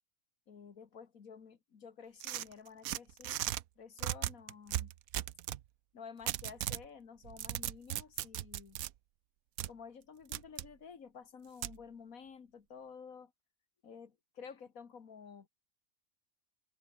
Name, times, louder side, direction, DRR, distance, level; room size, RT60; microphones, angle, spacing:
voice 1, 0.5-3.4 3.8-4.9 5.9-8.8 9.7-13.3 13.8-15.5, left 6 dB, 75° left, 2.1 m, -52 dB
sound 1, 2.2-3.6 4.0-5.6 6.3-6.9 7.2-8.9 9.6-9.7 10.3-10.7 11.6-11.8, right 13 dB, 80° right, 1.1 m, -37 dB
omnidirectional pair, 1.5 m